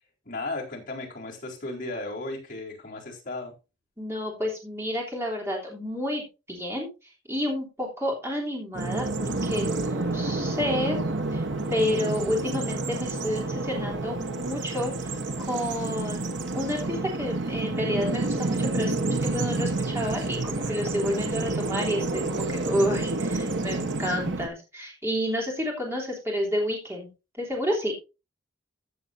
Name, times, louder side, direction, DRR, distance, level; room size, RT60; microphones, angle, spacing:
voice 1, 0.3-3.5, left 2 dB, 45° left, -2 dB, 4.2 m, -35 dB
voice 2, 4.0-6.9 7.3-11.0 11.3-11.4 11.7-16.2 16.5-27.1 27.4-27.9, equal, 15° right, -1 dB, 3.1 m, -30 dB
Bird vocalization bird call bird song, 8.7-24.5, right 2 dB, 70° right, 1.1 m, -29 dB
14.5 x 7.8 x 2.6 m, 0.28 s
head